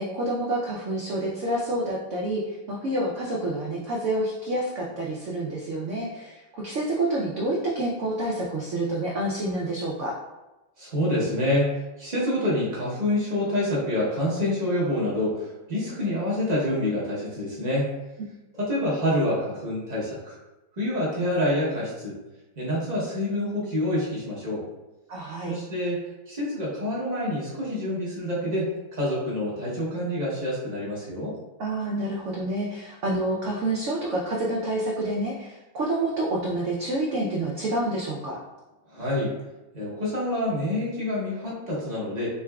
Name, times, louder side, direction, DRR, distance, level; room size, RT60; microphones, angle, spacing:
voice 1, 0.0-10.1 25.1-25.6 31.6-38.4, right 1 dB, 85° right, -4 dB, 0.6 m, -28 dB
voice 2, 10.8-17.9 18.6-20.4 20.8-22.2 22.6-24.6 25.5-31.3 38.9-39.3 39.7-42.3, left 1 dB, 40° right, -6 dB, 0.6 m, -27 dB
3.8 x 3.5 x 2.2 m, 1.0 s
omnidirectional pair, 2.0 m